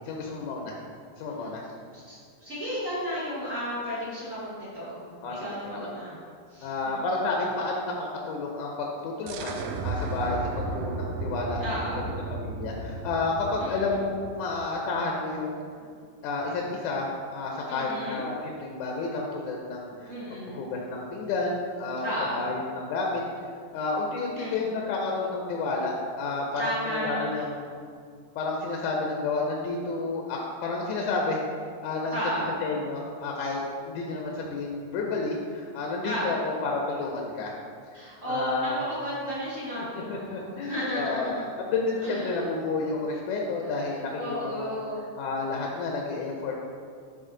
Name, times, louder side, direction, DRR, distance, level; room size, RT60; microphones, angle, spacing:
voice 1, 0.1-0.8 1.2-1.6 5.2-5.9 6.6-11.6 11.9-12.0 12.3-15.6 16.2-20.1 20.4-23.2 23.7-27.8 28.4-31.4 31.8-32.2 32.6-33.6 33.9-37.6 38.3-38.8 39.8-41.4 41.7-44.8 45.2-46.5, left 3 dB, 75° left, -1 dB, 1.9 m, -31 dB
voice 2, 1.9-5.1 5.4-6.2 6.5-7.0 11.6-12.2 13.6-14.0 17.7-18.2 20.1-20.6 22.0-22.5 24.3-24.7 26.6-27.4 32.1-32.6 33.4-33.5 36.0-36.5 37.9-41.4 42.0-42.4 43.7-45.0, equal, 70° right, -10 dB, 0.7 m, -33 dB
sound 1, 9.3-14.8, right 2 dB, 90° right, 1.6 m, -34 dB
9.1 x 3.8 x 3.8 m, 2.2 s
omnidirectional pair, 3.9 m